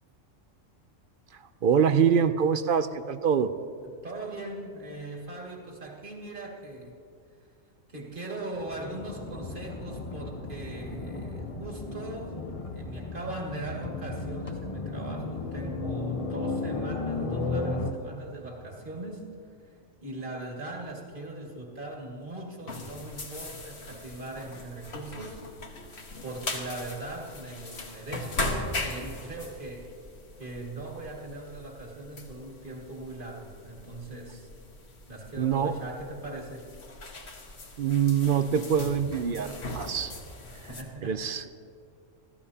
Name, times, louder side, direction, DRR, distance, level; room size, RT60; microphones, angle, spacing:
voice 1, 1.3-3.5 35.4-35.8 37.8-40.1 41.0-41.5, right 7 dB, 60° right, 11 dB, 0.6 m, -25 dB
voice 2, 3.8-6.9 7.9-12.5 12.7-19.3 19.7-19.8 20.0-25.4 25.8-25.9 26.2-29.9 30.4-34.5 35.1-36.7 40.5-41.2, right 2 dB, 40° right, -2 dB, 2.3 m, -40 dB
sound 1, 8.6-17.9, left 3 dB, 30° left, 0.8 m, -34 dB
sound 2, 22.7-40.8, left 2 dB, 55° left, 1.6 m, -39 dB
28.0 x 14.0 x 2.8 m, 2.5 s
omnidirectional pair, 1.3 m